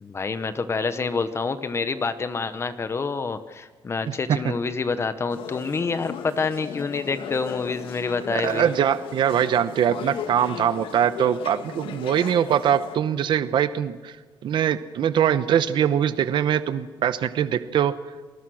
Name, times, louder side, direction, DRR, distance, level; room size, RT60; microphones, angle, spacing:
voice 1, 0.0-8.7, left 4 dB, 30° left, 11 dB, 1.0 m, -27 dB
voice 2, 4.1-4.4 8.3-14.1 14.4-17.9, right 9 dB, 65° right, 12 dB, 0.9 m, -22 dB
sound 1, 5.3-13.0, left 8 dB, 80° left, 1.6 m, -37 dB
28.5 x 20.5 x 6.4 m, 1.4 s
cardioid pair, 130°, 9 cm